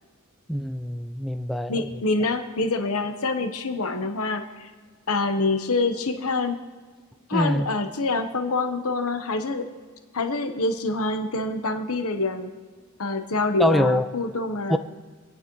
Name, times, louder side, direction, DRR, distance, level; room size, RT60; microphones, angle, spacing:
voice 1, 0.5-1.8 7.3-7.7 13.6-14.1 14.7-14.8, equal, ahead, 10 dB, 0.4 m, -24 dB
voice 2, 1.7-4.7 5.1-6.6 7.3-9.6 10.1-12.5 13.0-14.8, left 3 dB, 75° left, 6 dB, 1.0 m, -26 dB
27.5 x 9.5 x 3.1 m, 1.5 s
head